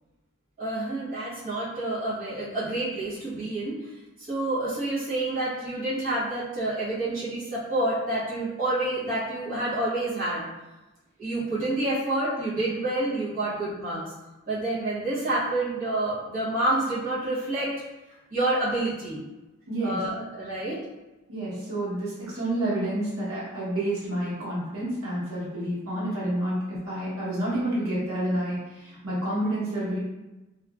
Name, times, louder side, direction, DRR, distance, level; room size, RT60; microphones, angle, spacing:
voice 1, 0.6-3.8 4.2-10.5 11.2-14.1 14.5-17.7 18.3-19.2 19.8-20.8, right 2 dB, 40° right, -11 dB, 0.9 m, -28 dB
voice 2, 19.7-20.0 21.3-30.0, right 1 dB, 85° right, -8 dB, 1.0 m, -29 dB
2.9 x 2.4 x 2.3 m, 1.1 s
head